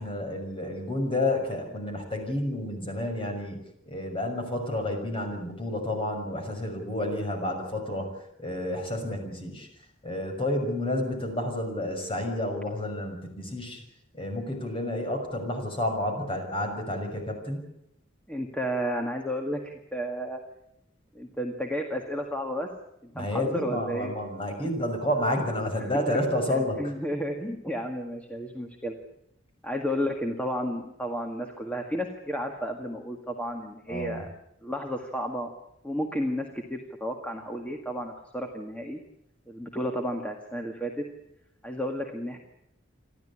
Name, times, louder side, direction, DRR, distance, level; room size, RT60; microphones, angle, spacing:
voice 1, 0.0-3.6 3.9-8.1 8.4-9.7 10.0-13.8 14.1-17.6 23.1-26.9 33.9-34.2, left 1 dB, 30° left, 4 dB, 6.2 m, -30 dB
voice 2, 18.3-20.4 21.1-22.7 23.0-24.1 25.9-26.2 26.5-29.0 29.6-34.3 34.6-35.5 35.8-39.0 39.5-41.1 41.6-42.4, equal, 5° left, 3 dB, 1.8 m, -32 dB
29.0 x 12.5 x 9.9 m, 0.80 s
head